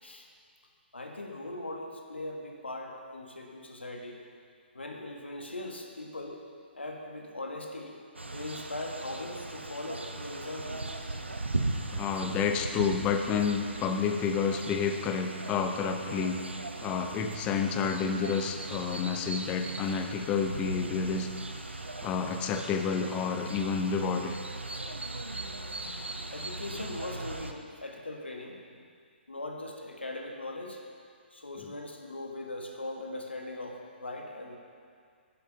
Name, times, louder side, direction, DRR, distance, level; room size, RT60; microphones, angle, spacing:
voice 1, 0.9-4.2 4.7-6.4 6.7-8.0 8.2-10.8 26.3-28.8 29.3-30.8 31.3-34.6, left 2 dB, 75° left, 2 dB, 1.6 m, -40 dB
sound 1, 8.2-27.5, right 2 dB, 80° right, 0.8 m, -38 dB
voice 2, 11.9-16.4 16.8-21.3 22.0-24.4, left 6 dB, 20° left, 6 dB, 0.7 m, -29 dB
10.5 x 8.1 x 5.7 m, 2.2 s
figure-of-eight pair, 125°, 6 cm